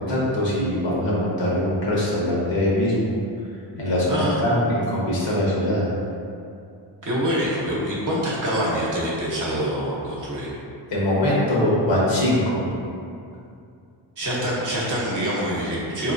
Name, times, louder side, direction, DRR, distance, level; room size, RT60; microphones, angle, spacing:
voice 1, 0.0-3.2 3.8-5.9 10.9-12.7, left 1 dB, 70° left, -6 dB, 1.2 m, -22 dB
voice 2, 7.0-10.5 14.2-16.1, equal, 40° right, -6 dB, 1.0 m, -25 dB
4.2 x 3.0 x 2.5 m, 2.4 s
cardioid pair, 115°, 46 cm